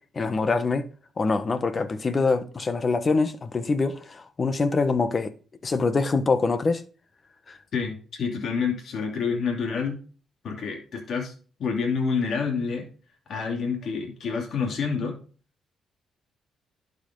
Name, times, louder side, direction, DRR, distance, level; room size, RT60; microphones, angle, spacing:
voice 1, 0.1-0.9 1.2-5.3 5.6-6.8 7.5-7.6, left 4 dB, 35° left, 1.2 m, -24 dB
voice 2, 7.7-10.0 10.4-11.3 11.6-12.8 13.3-15.1, left 5 dB, 60° left, 2.8 m, -28 dB
11.5 x 5.5 x 3.9 m
cardioid pair, 90°, 0 cm